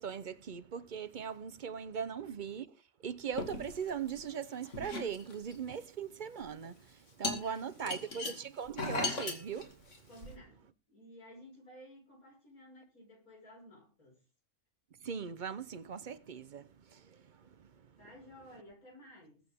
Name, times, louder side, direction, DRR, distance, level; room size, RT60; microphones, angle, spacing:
voice 1, 0.0-2.8 3.0-10.1 15.0-18.0, right 7 dB, 45° right, 0.6 m, -40 dB
sound 1, 3.3-4.3 4.6-5.7 6.5-6.7 7.2-10.3, left 3 dB, 55° left, 2.7 m, -38 dB
voice 2, 7.3-8.2 10.1-14.2 18.0-19.4, equal, 75° left, 5.8 m, -55 dB
21.5 x 8.7 x 3.6 m
omnidirectional pair, 1.5 m